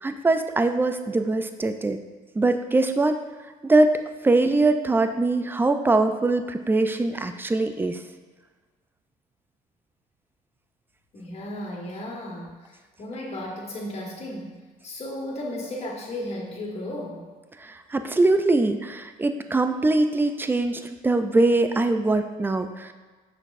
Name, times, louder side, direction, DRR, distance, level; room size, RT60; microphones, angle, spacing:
voice 1, 0.0-2.0 2.4-3.2 3.6-3.9 4.2-8.0 17.9-22.9, right 2 dB, 10° right, 8 dB, 0.4 m, -22 dB
voice 2, 11.1-12.5 13.0-14.6 14.8-17.2, left 1 dB, 40° left, -1 dB, 1.7 m, -34 dB
6.7 x 6.1 x 2.6 m, 1.4 s
cardioid pair, 110°, 17 cm